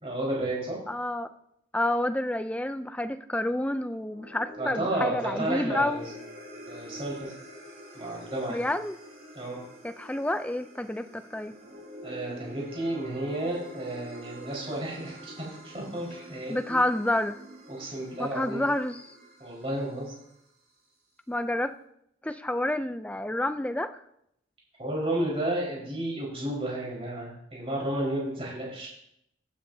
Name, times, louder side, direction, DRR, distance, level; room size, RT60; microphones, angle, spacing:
voice 1, 0.0-0.8 4.6-6.1 6.7-7.3 7.9-8.6 9.3-9.6 12.0-16.8 17.7-18.6 19.4-20.1 24.8-28.9, right 1 dB, 30° right, -4 dB, 4.7 m, -32 dB
voice 2, 0.9-1.3 1.7-6.0 8.5-9.0 9.8-11.5 16.5-17.4 18.2-19.1 21.3-21.7 22.2-23.9, left 1 dB, 5° left, 10 dB, 0.4 m, -29 dB
sound 1, 4.0-20.5, equal, 55° right, 5.1 m, -46 dB
15.0 x 9.7 x 2.8 m, 0.75 s
head